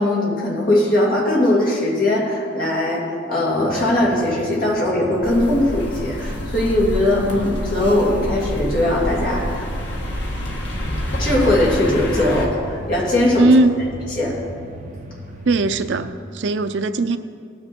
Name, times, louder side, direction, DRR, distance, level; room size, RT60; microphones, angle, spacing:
voice 1, 0.0-9.7 11.2-13.5 14.2-14.4, left 1 dB, 45° left, -5 dB, 2.9 m, -20 dB
sound 1, 3.5-16.1, equal, 45° right, 1.2 m, -37 dB
sound 2, 5.2-12.5, left 1 dB, 70° left, 1.6 m, -28 dB
Motorcycle, 10.7-14.7, equal, ahead, 3.5 m, -32 dB
voice 2, 13.4-13.8 15.5-17.2, right 2 dB, 75° right, 11 dB, 0.5 m, -18 dB
18.0 x 6.6 x 4.4 m, 2.2 s
head